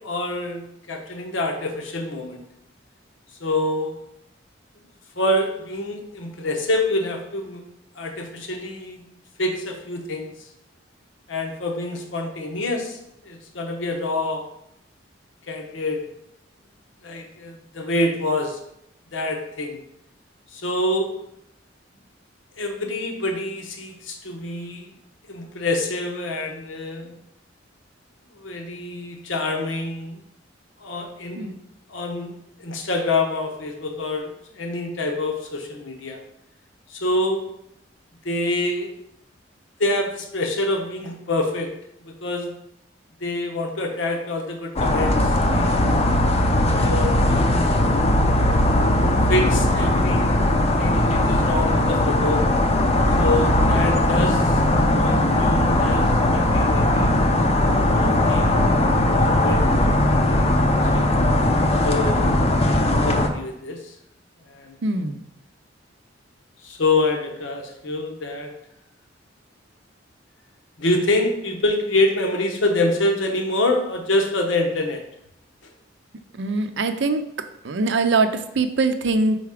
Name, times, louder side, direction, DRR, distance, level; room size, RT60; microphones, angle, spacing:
voice 1, 0.0-2.4 3.4-3.9 5.2-7.6 8.0-9.1 9.4-10.3 11.3-14.4 15.5-16.0 17.0-18.6 19.1-19.8 20.5-21.1 22.6-24.9 25.3-27.1 28.4-30.2 30.8-31.5 31.9-32.3 32.6-36.2 36.9-37.4 38.2-38.9 39.8-41.7 42.0-42.5 43.2-45.8 46.8-47.6 49.3-50.4 50.8-52.4 53.2-54.6 55.0-57.1 57.9-58.6 59.1-59.9 60.2-60.3 60.9-61.1 61.8-63.9 64.5-64.8 66.6-68.5 70.8-75.0, left 2 dB, 90° left, 3 dB, 1.0 m, -26 dB
sound 1, 44.8-63.3, left 1 dB, 35° left, 0.5 m, -19 dB
voice 2, 64.8-65.2 76.4-77.2 77.6-79.4, right 3 dB, 65° right, 8 dB, 0.5 m, -22 dB
4.7 x 4.1 x 4.9 m, 0.79 s
head